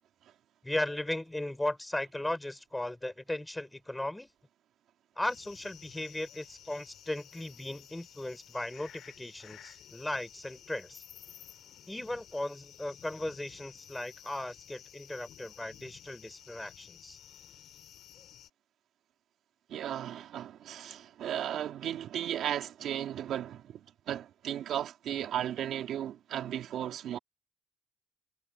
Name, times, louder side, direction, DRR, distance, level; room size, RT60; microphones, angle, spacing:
voice 1, 0.6-4.3 5.2-11.0 11.9-17.2, left 1 dB, 10° left, 4.7 m, -37 dB
sound 1, 5.2-18.5, left 10 dB, 70° left, 6.2 m, -54 dB
voice 2, 19.7-27.2, right 10 dB, 75° right, 2.6 m, -35 dB
cardioid pair, 90°, 0 cm